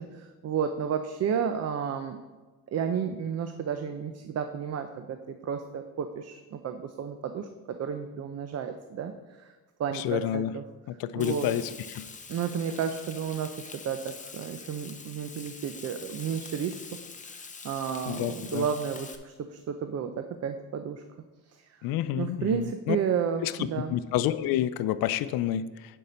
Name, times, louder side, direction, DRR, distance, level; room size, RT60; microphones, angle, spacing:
voice 1, 0.0-2.2 2.7-9.5 9.8-10.6 11.2-11.5 12.3-17.0 17.6-21.0 21.5-21.7 22.2-23.9, right 7 dB, 45° right, 8 dB, 0.6 m, -32 dB
voice 2, 9.9-10.5 10.9-12.1 18.1-18.7 21.8-23.0 23.4-23.5 23.9-26.0, left 12 dB, 80° left, 14 dB, 0.6 m, -29 dB
Frying (food), 11.2-19.1, left 5 dB, 20° left, 0.8 m, -45 dB
10.5 x 5.5 x 4.3 m, 1.3 s
cardioid pair, 105°, 35 cm